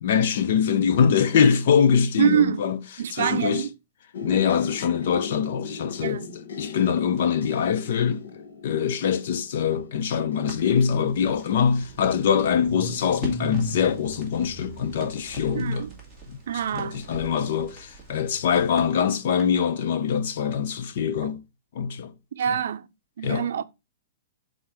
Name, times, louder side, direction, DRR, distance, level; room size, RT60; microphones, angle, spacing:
voice 1, 0.0-2.8 3.1-3.6 4.2-6.2 6.6-15.8 16.3-16.4 16.7-21.4 21.7-22.1 23.2-23.5, left 7 dB, 45° left, 0.6 m, -23 dB
voice 2, 2.2-2.7 3.0-3.7 6.0-6.4 15.5-16.0 16.5-17.0 21.2-21.3 22.3-22.9 23.2-23.6, right 9 dB, 60° right, 0.5 m, -25 dB
sound 1, 4.1-16.0 16.7-17.1 17.5-17.8, left 6 dB, 85° left, 1.1 m, -41 dB
Crackle, 10.4-19.7, right 2 dB, 5° left, 1.8 m, -43 dB
Car / Engine starting, 10.8-10.9 11.2-16.4, right 3 dB, 15° right, 0.6 m, -41 dB
5.9 x 3.9 x 4.6 m
hypercardioid pair, 175°, 0 cm